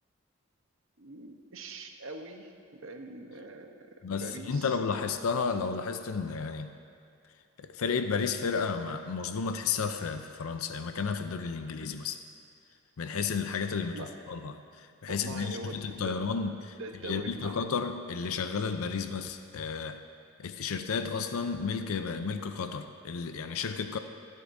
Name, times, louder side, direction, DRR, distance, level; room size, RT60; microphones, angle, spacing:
voice 1, 1.0-4.8 13.9-14.1 15.1-16.4 16.8-17.6, right 2 dB, 70° right, 5 dB, 0.9 m, -43 dB
voice 2, 4.0-6.7 7.6-12.2 13.0-16.8 17.0-20.0 20.4-24.0, left 5 dB, 85° left, 8 dB, 0.5 m, -32 dB
23.5 x 8.3 x 2.6 m, 2.5 s
head